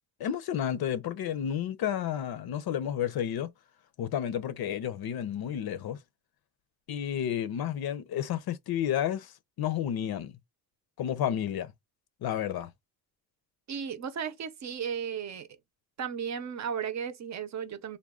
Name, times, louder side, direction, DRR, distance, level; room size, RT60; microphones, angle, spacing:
voice 1, 0.2-3.5 4.0-6.0 6.9-9.3 9.6-10.4 11.0-11.7 12.2-12.7, left 10 dB, 80° left, 0.7 m, -31 dB
voice 2, 13.7-15.5 16.0-18.0, right 7 dB, 50° right, 0.6 m, -35 dB
3.7 x 2.2 x 3.5 m
wide cardioid pair, 165°, 37 cm